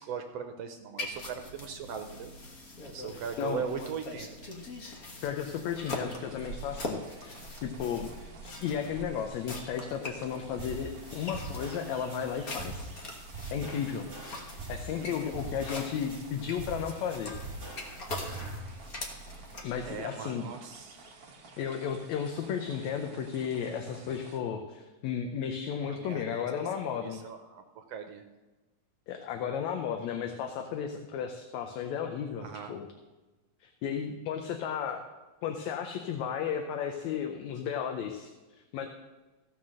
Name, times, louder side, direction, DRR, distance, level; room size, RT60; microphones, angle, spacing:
voice 1, 0.0-2.3 2.9-4.3 14.9-15.3 19.8-21.0 25.8-26.7 27.0-28.2 32.4-32.7, right 7 dB, 70° right, 6 dB, 1.7 m, -39 dB
sound 1, 1.0-19.9, left 2 dB, 45° left, 1.2 m, -43 dB
voice 2, 5.2-12.9 13.5-14.1 14.7-17.3 19.6-20.5 21.6-27.2 29.1-32.9 33.6-35.0 35.4-38.9, left 8 dB, 75° left, 5 dB, 2.0 m, -34 dB
sound 2, 5.6-24.4, right 4 dB, 55° right, 1.0 m, -51 dB
sound 3, 10.6-18.6, right 2 dB, 20° right, 2.4 m, -43 dB
15.0 x 5.7 x 6.3 m, 1.2 s
omnidirectional pair, 3.4 m